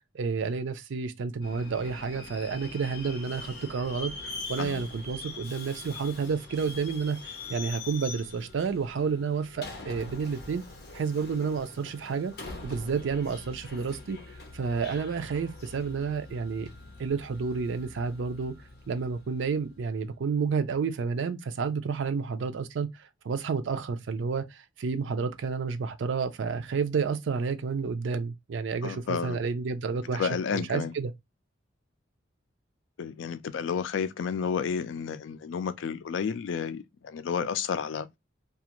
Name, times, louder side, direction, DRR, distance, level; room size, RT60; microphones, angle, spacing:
voice 1, 0.1-10.6 10.9-12.3 12.6-14.2 14.5-16.7 17.0-18.6 18.9-31.1, right 5 dB, 75° right, 0.4 m, -30 dB
Subway metro underground, 1.4-19.9, left 3 dB, 55° left, 0.7 m, -43 dB
voice 2, 4.6-4.9 28.8-29.4 30.1-30.9 33.0-38.1, left 6 dB, 80° left, 0.3 m, -31 dB
2.4 x 2.4 x 2.9 m
head